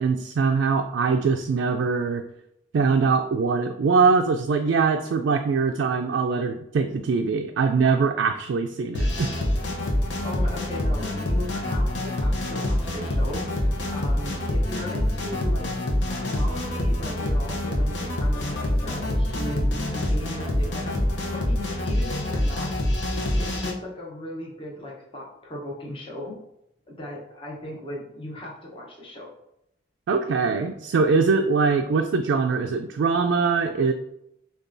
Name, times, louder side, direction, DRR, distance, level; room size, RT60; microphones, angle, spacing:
voice 1, 0.0-2.2 2.7-9.3 30.1-33.9, right 4 dB, 75° right, 4 dB, 0.3 m, -22 dB
sound 1, 8.9-23.7, left 1 dB, 75° left, 0.7 m, -25 dB
voice 2, 9.8-15.7 16.0-22.7 23.4-26.4 26.9-29.3, left 1 dB, 30° left, -3 dB, 0.8 m, -37 dB
6.6 x 2.3 x 2.6 m, 0.81 s
head